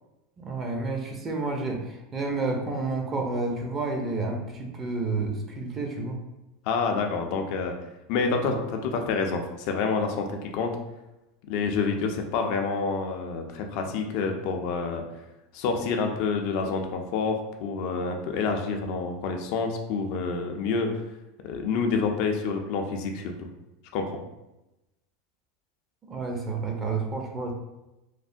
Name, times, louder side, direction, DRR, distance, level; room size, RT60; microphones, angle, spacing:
voice 1, 0.4-6.2 8.2-8.3 26.1-27.5, right 3 dB, 30° right, 2 dB, 0.7 m, -30 dB
voice 2, 6.7-7.7 8.1-10.7 11.5-15.0 15.5-21.0 21.4-23.5 23.9-24.1, left 4 dB, 60° left, 4 dB, 0.4 m, -28 dB
3.2 x 2.1 x 2.6 m, 0.97 s
hypercardioid pair, 95°, 0 cm